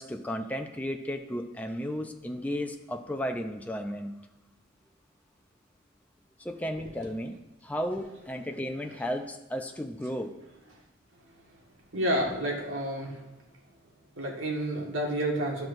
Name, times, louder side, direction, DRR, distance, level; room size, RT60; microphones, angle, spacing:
voice 1, 0.0-4.2 6.4-10.3, equal, 10° left, 4 dB, 0.4 m, -34 dB
voice 2, 11.9-13.2 14.2-15.7, right 1 dB, 85° right, -1 dB, 1.6 m, -30 dB
13.0 x 5.9 x 2.6 m, 0.95 s
head